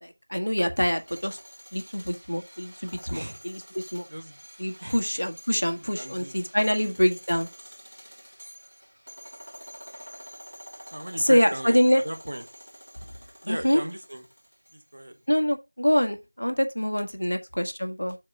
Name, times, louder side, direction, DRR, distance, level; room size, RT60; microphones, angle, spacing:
voice 1, 0.0-1.4 1.7-4.0 4.6-7.5 11.2-12.0 13.5-13.8 15.3-18.2, equal, 65° left, 1.7 m, -25 dB
sound 1, 0.9-15.0, equal, 70° right, 2.9 m, -48 dB
voice 2, 5.4-7.0 10.9-12.4 13.4-14.2 14.7-15.2 17.3-17.4, right 1 dB, 35° right, 1.3 m, -38 dB
7.4 x 4.1 x 6.1 m
figure-of-eight pair, 175°, 0 cm